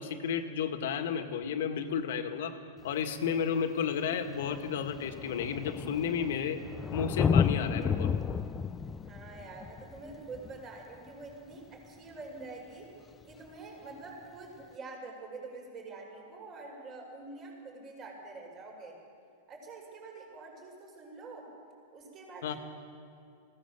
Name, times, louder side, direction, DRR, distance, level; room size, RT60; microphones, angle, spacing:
voice 1, 0.0-2.6 2.8-6.6 6.9-8.2 22.4-22.6, left 7 dB, 70° left, 6 dB, 1.8 m, -32 dB
Thunder, 2.9-3.0 3.9-4.0 4.2-11.5 13.2-13.3, left 6 dB, 20° left, 0.5 m, -32 dB
voice 2, 9.0-12.9 13.2-19.0 19.5-21.5 21.9-22.6, right 3 dB, 35° right, 0 dB, 6.2 m, -46 dB
20.5 x 17.5 x 7.3 m, 2.5 s
hypercardioid pair, 130°, 0 cm